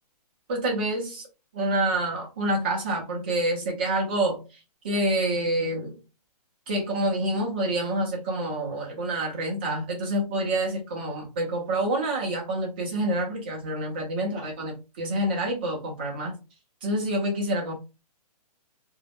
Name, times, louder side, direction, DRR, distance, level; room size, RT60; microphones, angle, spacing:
voice 1, 0.5-1.3 1.5-4.4 4.8-6.0 6.7-16.3 16.8-17.7, right 1 dB, 15° right, -1 dB, 0.5 m, -27 dB
2.4 x 2.0 x 3.3 m, 0.29 s
hypercardioid pair, 175°, 20 cm